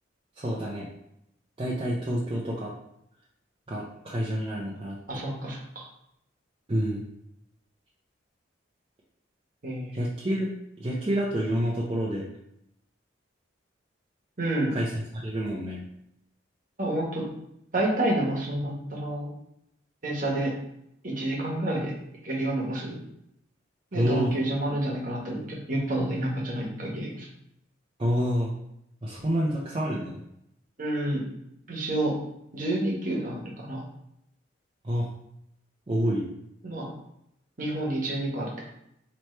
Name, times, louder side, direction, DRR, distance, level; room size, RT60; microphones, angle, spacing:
voice 1, 0.4-0.9 1.6-2.7 3.7-5.0 6.7-7.0 9.9-10.5 10.8-12.3 14.7-15.8 23.9-24.3 28.0-28.5 29.0-30.2 34.8-35.1 35.9-36.2, equal, 30° right, -5 dB, 0.6 m, -28 dB
voice 2, 5.1-5.8 9.6-10.0 14.4-14.7 16.8-17.3 17.7-19.3 20.0-20.5 21.0-21.9 22.2-23.0 23.9-27.3 30.8-31.2 31.7-32.2 32.5-33.8 36.6-36.9 37.6-38.7, right 1 dB, 45° right, -2 dB, 1.1 m, -29 dB
3.2 x 3.0 x 4.2 m, 0.78 s
head